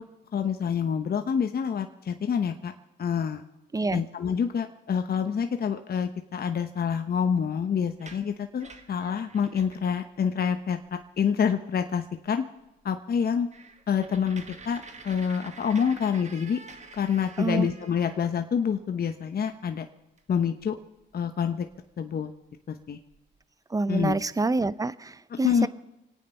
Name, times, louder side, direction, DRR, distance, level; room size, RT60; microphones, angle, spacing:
voice 1, 0.3-2.7 3.0-3.4 3.9-12.4 12.8-13.5 13.9-16.6 16.9-19.9 20.3-20.8 21.1-21.7 22.0-22.3 22.7-23.0 23.9-24.2 25.3-25.7, left 7 dB, 50° left, 7 dB, 1.0 m, -27 dB
voice 2, 3.7-4.0 17.4-17.7 23.7-25.7, right 3 dB, 15° right, 17 dB, 0.7 m, -27 dB
sound 1, 7.9-10.0 10.4-10.6 10.8-11.3 11.7-11.8 12.3-12.4 12.7-12.8 13.1-18.8 20.2-20.3 20.6-21.9 22.5-22.6 22.8-23.4, right 4 dB, 35° right, 1.8 m, -48 dB
25.5 x 9.1 x 5.5 m, 0.96 s
cardioid pair, 75°, 20 cm